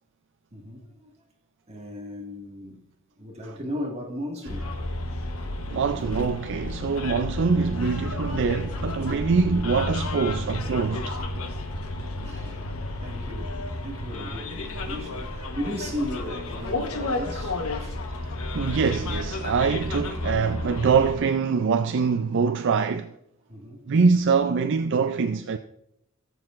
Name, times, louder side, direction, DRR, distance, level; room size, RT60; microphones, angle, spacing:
voice 1, 0.5-1.1 1.7-2.8 3.2-4.8 12.1-12.8 13.0-18.0 23.5-23.8, left 1 dB, 30° right, 1.9 m, -36 dB
Bus, 4.5-21.2, left 2 dB, 85° left, 1.1 m, -31 dB
voice 2, 5.7-11.2 18.5-23.1 23.8-25.6, right 5 dB, 60° right, 0.4 m, -24 dB
17.5 x 7.8 x 2.5 m
head